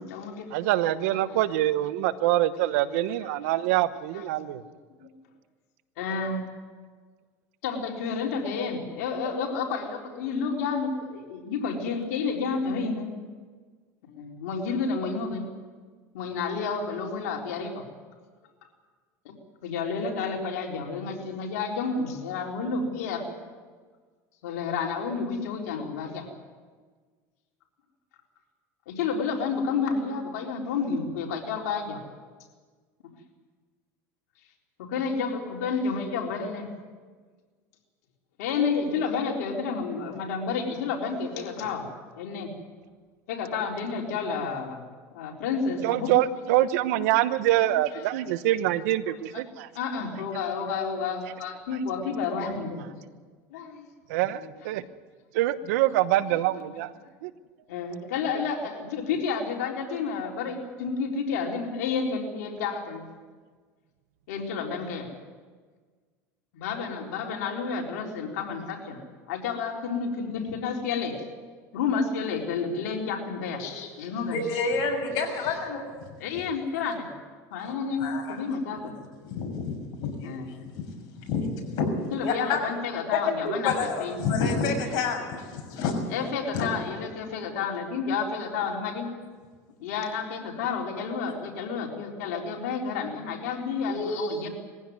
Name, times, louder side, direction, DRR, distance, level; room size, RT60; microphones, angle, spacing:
voice 1, 0.0-0.5 1.0-1.7 2.0-2.1 2.5-3.6 3.9-4.3 5.0-5.2 6.0-6.4 7.6-13.1 14.1-15.5 16.1-17.8 19.2-19.3 19.6-23.3 24.4-26.3 28.9-32.0 34.8-36.7 38.4-41.9 42.2-42.5 43.3-44.8 45.1-48.2 48.5-49.4 49.7-52.9 53.5-53.9 54.3-54.7 55.7-56.3 56.6-57.1 57.7-63.0 64.3-65.1 66.5-69.0 69.3-71.2 71.7-74.7 75.1-75.6 76.2-77.1 77.5-78.9 80.2-80.6 82.1-84.2 85.3-85.5 86.1-89.1 89.8-94.5, left 5 dB, 85° left, 1 dB, 3.9 m, -31 dB
voice 2, 0.5-4.6 45.8-49.7 54.1-54.8 55.3-56.9 57.2-57.3, right 14 dB, 80° right, 14 dB, 1.0 m, -25 dB
voice 3, 74.3-75.9 78.0-78.4 79.3-80.8 81.2-81.9 82.2-82.6 83.6-86.0 86.5-86.7, left 4 dB, 60° left, 3 dB, 6.7 m, -29 dB
21.5 x 16.0 x 9.6 m, 1.5 s
supercardioid pair, 110°, 8 cm